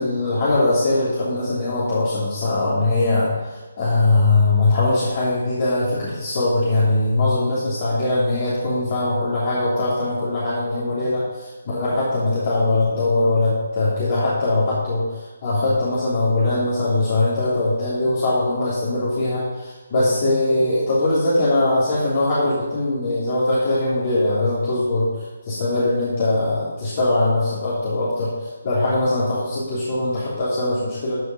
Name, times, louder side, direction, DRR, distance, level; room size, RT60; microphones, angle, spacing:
voice 1, 0.0-25.1 25.4-31.1, left 2 dB, 40° left, -9 dB, 3.2 m, -21 dB
14.0 x 5.5 x 5.3 m, 1.3 s
figure-of-eight pair, 155°, 0 cm